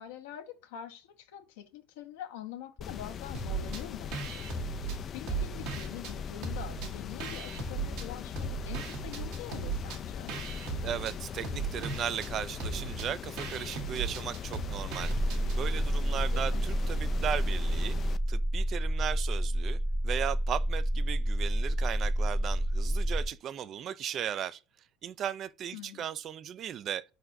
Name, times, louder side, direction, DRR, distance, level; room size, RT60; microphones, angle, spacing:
voice 1, 0.0-10.3 16.3-16.6 25.7-26.1, left 11 dB, 75° left, 0.8 m, -45 dB
sound 1, 2.8-18.2, left 8 dB, 40° left, 0.3 m, -40 dB
sound 2, 3.3-3.8 4.1-6.1 6.4-8.1 8.4-15.6, right 5 dB, 65° right, 1.2 m, -37 dB
voice 2, 10.8-15.1 15.5-18.0 18.3-19.8 20.0-24.6 25.0-27.0, right 9 dB, 40° right, 0.3 m, -36 dB
sound 3, 15.0-23.3, right 1 dB, ahead, 0.9 m, -29 dB
4.4 x 3.9 x 2.6 m
hypercardioid pair, 95°, 0 cm